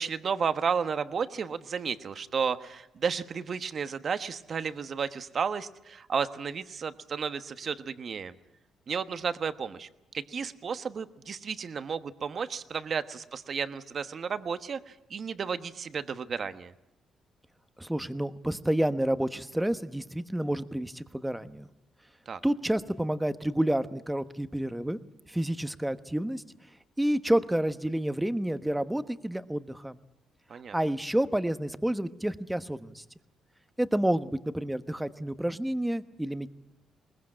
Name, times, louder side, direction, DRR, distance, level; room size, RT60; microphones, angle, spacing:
voice 1, 0.0-8.3 8.9-9.9 10.1-16.7 22.3-22.4 30.5-30.8, right 6 dB, 50° right, 11 dB, 1.2 m, -32 dB
voice 2, 17.8-21.7 22.4-25.0 25.3-26.4 27.0-30.0 30.7-33.0 33.8-36.5, right 1 dB, 5° right, 11 dB, 1.1 m, -29 dB
21.5 x 20.0 x 8.8 m, 0.90 s
cardioid pair, 90°, 0 cm